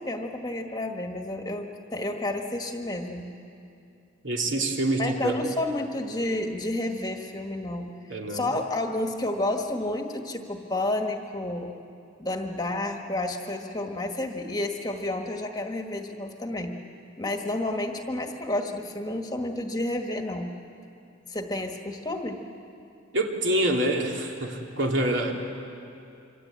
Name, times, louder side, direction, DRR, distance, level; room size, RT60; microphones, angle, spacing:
voice 1, 0.0-3.3 5.0-11.7 12.2-16.8 17.2-20.6 21.3-22.4, left 1 dB, 20° left, 4 dB, 1.5 m, -30 dB
voice 2, 4.2-5.4 8.1-8.5 23.1-25.3, right 1 dB, 65° right, 1 dB, 2.8 m, -26 dB
26.5 x 25.0 x 8.7 m, 2.6 s
head